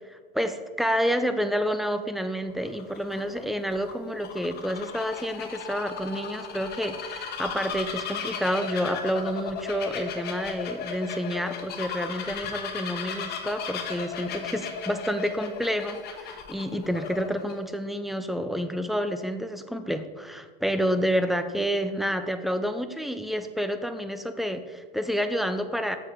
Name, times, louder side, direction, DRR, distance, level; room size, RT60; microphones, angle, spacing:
voice 1, 0.1-26.0, equal, ahead, 9 dB, 0.4 m, -29 dB
Bird vocalization bird call bird song, 2.5-17.5, left 6 dB, 35° left, 1.2 m, -36 dB
7.7 x 5.9 x 4.8 m, 1.5 s
hypercardioid pair, 110°, 29 cm